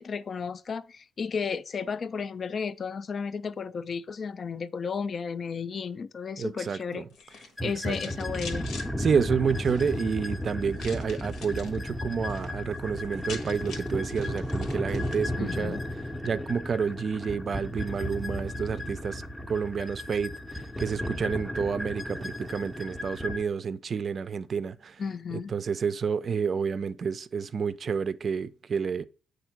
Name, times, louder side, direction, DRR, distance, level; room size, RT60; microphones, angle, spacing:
voice 1, 0.0-7.0 7.3-8.7 15.4-15.8 25.0-25.5, left 5 dB, 45° left, 0.4 m, -33 dB
voice 2, 6.4-7.1 7.6-8.0 9.0-15.8 16.2-19.2 19.5-20.3 20.8-25.0 25.5-29.0, right 6 dB, 45° right, 0.4 m, -29 dB
sound 1, 7.1-8.9 9.5-10.0 10.8-11.8 12.1-12.5 12.8-12.9 13.0-15.3, left 4 dB, 80° left, 1.1 m, -44 dB
sound 2, 7.6-23.4, left 1 dB, 5° left, 0.6 m, -34 dB
7.9 x 2.6 x 5.7 m
cardioid pair, 90°, 0 cm